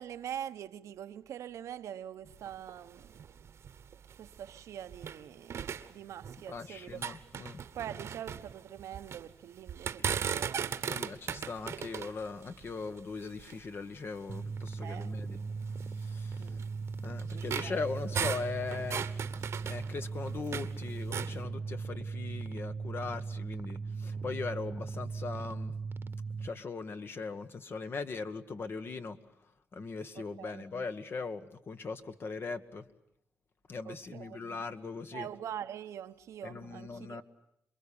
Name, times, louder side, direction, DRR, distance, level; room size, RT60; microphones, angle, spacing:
voice 1, 0.0-3.3 4.2-7.0 7.7-10.8 14.8-15.1 16.4-16.6 17.3-17.8 30.1-30.6 33.8-34.4 35.1-37.2, right 10 dB, 90° right, 1.0 m, -44 dB
sound 1, 2.3-5.2 5.5-6.6 6.9-9.3 9.7-13.7 14.3-14.4 14.9-15.0 15.8-20.7 21.0-21.4, right 7 dB, 65° right, 1.2 m, -38 dB
voice 2, 6.5-7.6 10.9-15.4 15.9-16.6 17.0-19.1 19.6-25.7 26.4-29.2 29.7-32.9 33.7-35.3 36.4-37.2, left 4 dB, 50° left, 1.5 m, -40 dB
sound 2, 14.3-26.5, right 4 dB, 50° right, 1.1 m, -38 dB
28.0 x 22.0 x 8.7 m
cardioid pair, 90°, 5 cm